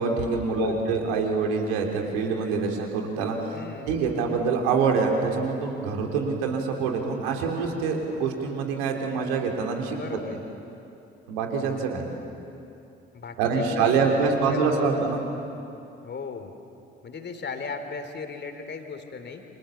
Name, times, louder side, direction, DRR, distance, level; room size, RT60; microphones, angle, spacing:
voice 1, 0.0-3.5 3.9-10.2 11.3-12.0 13.4-15.2, right 5 dB, 65° right, 2 dB, 3.4 m, -25 dB
voice 2, 0.5-0.9 3.5-4.0 9.9-10.4 13.1-15.0 16.0-16.5 17.0-19.4, left 5 dB, 35° left, 7 dB, 3.1 m, -36 dB
29.5 x 26.5 x 7.1 m, 2.8 s
figure-of-eight pair, 45°, 30 cm